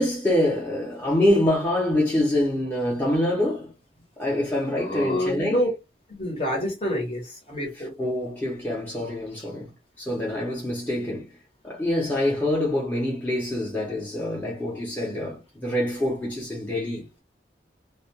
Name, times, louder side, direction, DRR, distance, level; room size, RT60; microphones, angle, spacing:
voice 1, 0.0-3.7 4.2-5.6 7.8-9.7 10.0-11.3 11.6-17.2, left 1 dB, 10° left, 0.8 m, -25 dB
voice 2, 4.8-5.7 6.2-7.9, equal, 35° left, 1.0 m, -27 dB
2.4 x 2.2 x 2.8 m
head